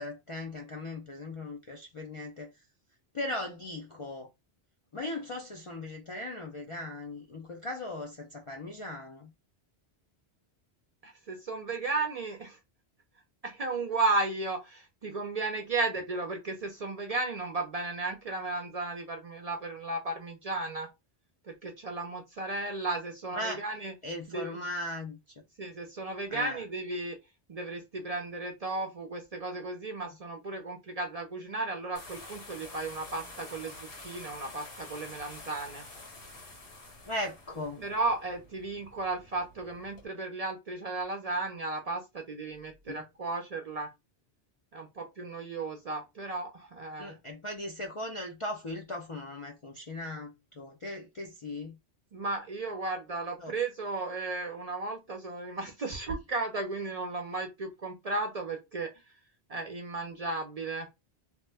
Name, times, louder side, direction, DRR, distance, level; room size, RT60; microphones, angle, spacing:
voice 1, 0.0-2.5 3.1-4.3 4.9-9.3 23.3-23.6 24.0-25.2 26.3-26.6 37.1-37.8 42.9-43.0 47.0-51.8 53.4-53.5, left 1 dB, 50° left, 0.4 m, -38 dB
voice 2, 11.0-12.6 13.4-20.9 21.5-23.9 24.3-24.6 25.6-27.2 27.5-35.9 37.8-43.9 44.7-47.2 52.1-58.9 59.5-60.9, right 3 dB, 50° right, 0.5 m, -34 dB
sound 1, 31.9-40.1, left 2 dB, 80° left, 1.6 m, -48 dB
2.9 x 2.1 x 3.3 m
omnidirectional pair, 1.1 m